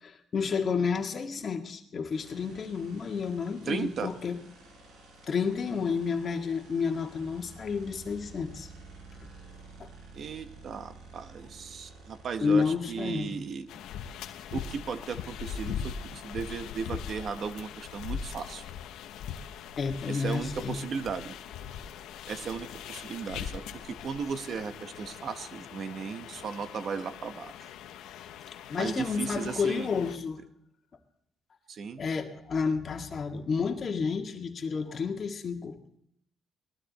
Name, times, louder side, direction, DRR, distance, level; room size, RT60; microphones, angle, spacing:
voice 1, 0.0-4.4 5.3-8.7 9.8-9.9 12.4-13.3 19.8-20.8 28.7-30.4 32.0-35.8, left 5 dB, 45° left, 4 dB, 1.8 m, -30 dB
sound 1, 2.1-14.4 16.5-16.6 16.8-21.2, right 3 dB, 85° right, 5.1 m, -52 dB
voice 2, 3.7-4.1 10.1-13.7 14.5-18.6 20.1-21.4 22.3-27.5 28.7-29.9 31.7-32.0, right 6 dB, 60° right, 10 dB, 1.1 m, -36 dB
sound 2, 13.7-30.2, left 8 dB, 90° left, 0.9 m, -41 dB
18.5 x 13.0 x 4.1 m, 0.76 s
cardioid pair, 90°, 0 cm